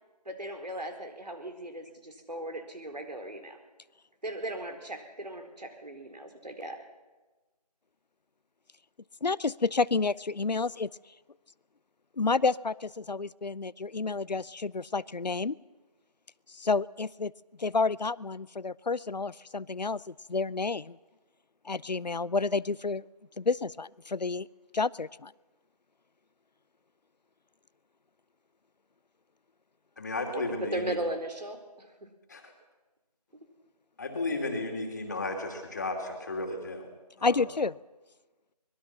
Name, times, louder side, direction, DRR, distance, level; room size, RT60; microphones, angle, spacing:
voice 1, 0.2-3.6 4.2-6.8 30.7-31.9 37.1-37.2, right 1 dB, 75° right, 5 dB, 4.5 m, -37 dB
voice 2, 9.2-10.9 12.2-15.6 16.5-17.3 17.6-21.0 21.6-23.0 23.4-24.5 24.7-25.3 37.2-37.8, left 4 dB, 85° left, 20 dB, 0.7 m, -30 dB
voice 3, 30.0-31.0 32.3-32.5 34.0-36.9 37.2-37.4, left 2 dB, 25° left, 3 dB, 2.8 m, -34 dB
24.0 x 21.5 x 6.0 m, 1.2 s
figure-of-eight pair, 170°, 21 cm